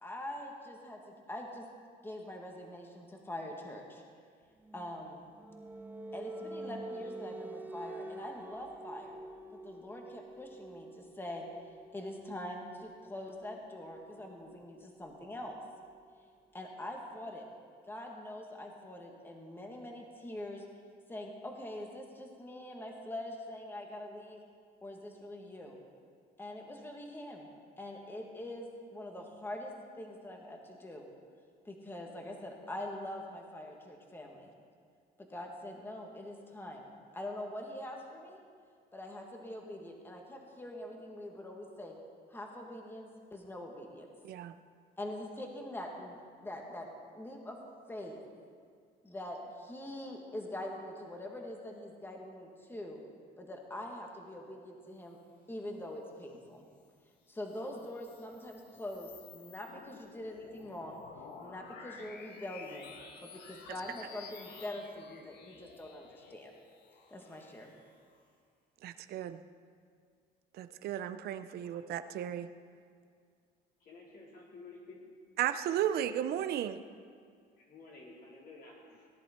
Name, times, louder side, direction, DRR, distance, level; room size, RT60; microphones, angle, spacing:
voice 1, 0.0-1.7 2.0-4.0 4.7-5.3 6.1-9.2 9.6-11.4 11.9-15.6 16.5-17.5 17.8-20.6 21.1-24.4 24.8-25.8 26.4-27.5 27.8-31.1 31.7-34.5 35.2-38.4 38.9-41.9 42.3-44.1 45.0-46.2 46.4-46.9 47.1-47.6 47.9-48.2 49.0-53.0 53.4-55.2 55.5-56.6 57.3-61.0 61.4-62.9 63.2-66.6 67.1-67.7, left 1 dB, 10° left, 1 dB, 1.7 m, -44 dB
sound 1, 4.6-16.1, right 2 dB, 10° right, 0.6 m, -48 dB
sound 2, 57.3-68.2, left 5 dB, 90° left, 1.5 m, -53 dB
voice 2, 68.8-69.4 70.5-72.5 75.4-76.8, right 10 dB, 70° right, 10 dB, 0.7 m, -34 dB
voice 3, 73.8-75.0 77.6-79.1, left 3 dB, 65° left, -4 dB, 4.1 m, -52 dB
18.0 x 10.5 x 4.4 m, 2.1 s
cardioid pair, 110°, 17 cm